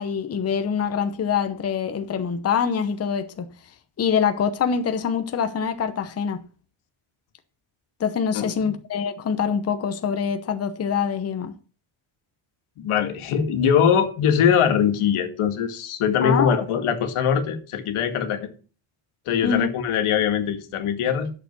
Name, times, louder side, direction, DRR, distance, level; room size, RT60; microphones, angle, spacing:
voice 1, 0.0-3.5 4.0-6.4 8.0-11.5 16.2-16.6 19.4-19.7, left 7 dB, 30° left, 0.9 m, -24 dB
voice 2, 8.3-8.7 12.8-18.5 19.3-21.3, left 8 dB, 85° left, 2.1 m, -22 dB
11.0 x 7.0 x 6.0 m
cardioid pair, 170°, 49 cm